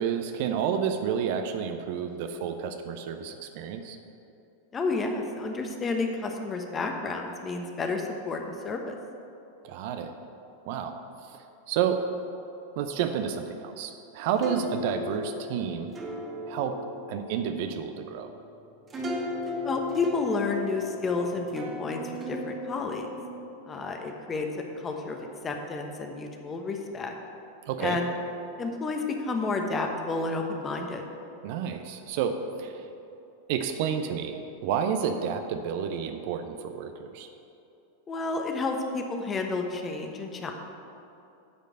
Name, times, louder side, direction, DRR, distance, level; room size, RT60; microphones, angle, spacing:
voice 1, 0.0-4.0 9.6-10.1 10.7-10.9 11.3-12.0 12.8-15.9 16.5-16.8 17.1-18.3 27.7-28.0 31.4-32.7 33.5-37.3, right 7 dB, 50° right, 7 dB, 0.7 m, -30 dB
voice 2, 4.7-9.0 19.6-23.1 23.7-24.5 24.8-25.2 25.4-27.1 27.8-28.1 28.6-31.0 38.1-40.5, left 3 dB, 20° left, 3 dB, 1.1 m, -30 dB
sound 1, 14.4-23.5, left 2 dB, 25° right, 1.6 m, -37 dB
9.7 x 5.2 x 7.6 m, 2.8 s
figure-of-eight pair, 90°, 0 cm